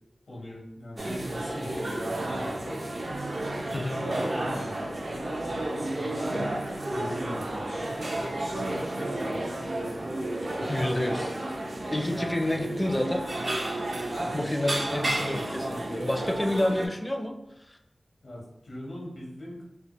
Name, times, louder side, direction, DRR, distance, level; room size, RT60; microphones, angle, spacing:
voice 1, 0.3-2.8 3.6-6.5 6.9-7.9 8.5-9.6 12.1-12.3 14.2-14.4 18.2-19.6, left 1 dB, 80° left, -3 dB, 0.9 m, -41 dB
sound 1, 1.0-16.9, right 1 dB, 60° right, 0.5 m, -32 dB
voice 2, 10.6-11.3 11.9-13.2 14.3-17.4, left 1 dB, 20° left, 3 dB, 0.4 m, -29 dB
3.3 x 2.1 x 3.0 m, 0.85 s
wide cardioid pair, 60°, 0 cm